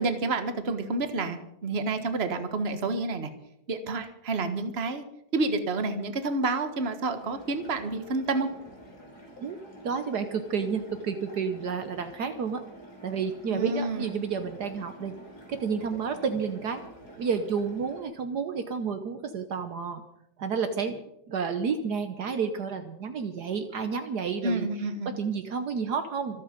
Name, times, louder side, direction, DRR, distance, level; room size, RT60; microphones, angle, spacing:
voice 1, 0.0-3.3 3.7-5.0 5.3-8.5 13.5-14.1 24.4-25.1, right 3 dB, 35° right, 9 dB, 1.6 m, -29 dB
sound 1, 7.1-18.0, equal, 55° left, 4.4 m, -48 dB
voice 2, 9.8-12.6 13.0-15.1 15.5-16.8 17.2-20.0 20.4-21.0 21.3-24.7 25.0-26.4, right 6 dB, 65° right, 8 dB, 1.5 m, -30 dB
26.0 x 8.7 x 5.2 m, 0.80 s
omnidirectional pair, 2.0 m